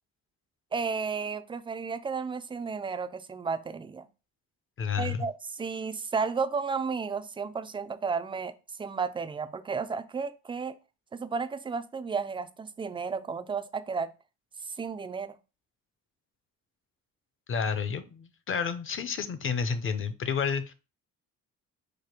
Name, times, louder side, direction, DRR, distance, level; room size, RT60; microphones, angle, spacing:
voice 1, 0.7-4.1 5.0-8.5 8.8-10.7 11.1-14.1 14.7-15.4, right 5 dB, 15° right, 0.4 m, -33 dB
voice 2, 4.8-5.3 17.5-20.7, left 6 dB, 35° left, 0.7 m, -30 dB
5.0 x 2.2 x 4.4 m
cardioid pair, 90°, 35 cm